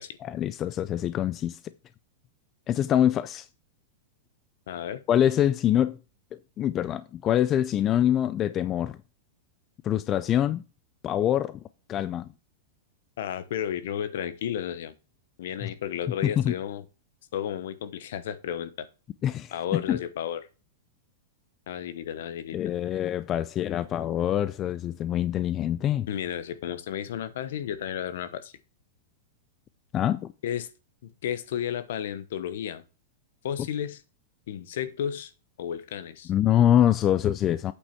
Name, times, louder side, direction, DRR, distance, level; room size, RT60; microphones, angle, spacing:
voice 1, 0.2-1.6 2.7-3.5 5.1-6.0 6.3-9.0 9.8-10.6 11.0-11.6 11.9-12.3 15.6-15.7 16.2-16.6 19.2-20.0 22.5-26.1 29.9-30.3 36.3-37.7, left 11 dB, 25° left, 0.4 m, -25 dB
voice 2, 4.7-5.0 13.2-14.9 15.4-16.8 17.3-18.9 19.5-20.5 21.7-22.6 26.1-28.5 30.4-30.7 31.0-32.8 33.4-34.0 34.5-35.3 35.6-36.3, left 9 dB, 70° left, 1.1 m, -33 dB
8.4 x 5.6 x 4.5 m
supercardioid pair, 155°, 0 cm